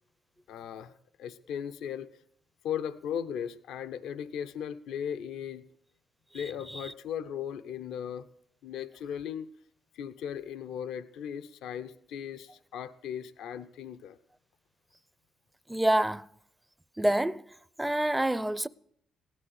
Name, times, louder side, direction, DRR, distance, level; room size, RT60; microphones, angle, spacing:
voice 1, 0.5-0.9 1.2-2.1 2.6-5.6 6.3-8.3 8.6-9.5 9.9-14.2, left 8 dB, 85° left, 0.6 m, -37 dB
voice 2, 15.7-16.3 17.0-17.4 17.8-18.7, right 1 dB, 10° right, 0.4 m, -27 dB
16.0 x 10.5 x 6.4 m
cardioid pair, 90°, 0 cm